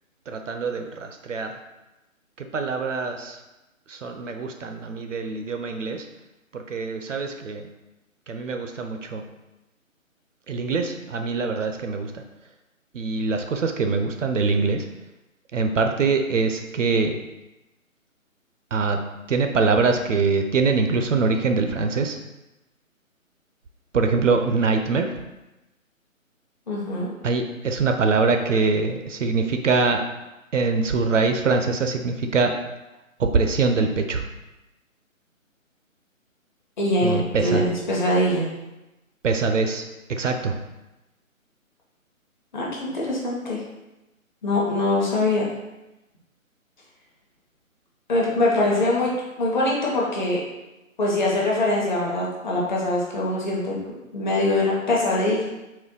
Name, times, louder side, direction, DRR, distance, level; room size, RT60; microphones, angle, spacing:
voice 1, 0.3-1.5 2.4-3.4 3.9-6.1 6.5-7.7 8.3-9.2 10.5-12.2 12.9-14.9 15.5-17.1 18.7-19.0 19.3-22.2 23.9-25.2 27.2-30.0 30.5-32.5 33.2-34.3 37.0-37.7 39.2-39.8 40.1-40.5, right 4 dB, 65° right, 5 dB, 0.5 m, -23 dB
voice 2, 26.7-27.1 36.8-38.5 42.5-43.6 44.4-45.4 48.1-49.1 49.4-50.4 51.0-53.8 54.1-55.4, left 1 dB, 35° left, -4 dB, 0.9 m, -23 dB
4.2 x 2.2 x 3.8 m, 1.0 s
figure-of-eight pair, 145°, 41 cm